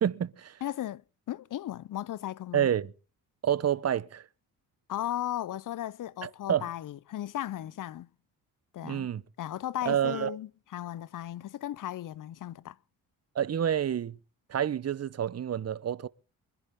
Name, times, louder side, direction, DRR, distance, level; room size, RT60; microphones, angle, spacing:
voice 1, 0.0-0.6 2.5-2.9 3.4-4.2 6.2-6.7 8.8-9.2 9.9-10.4 13.3-14.2 14.5-16.1, right 9 dB, 35° right, 0.8 m, -28 dB
voice 2, 0.6-2.7 4.9-8.1 8.7-9.1 9.4-12.8, left 12 dB, 50° left, 0.6 m, -36 dB
23.5 x 11.0 x 3.6 m
supercardioid pair, 55°, 41 cm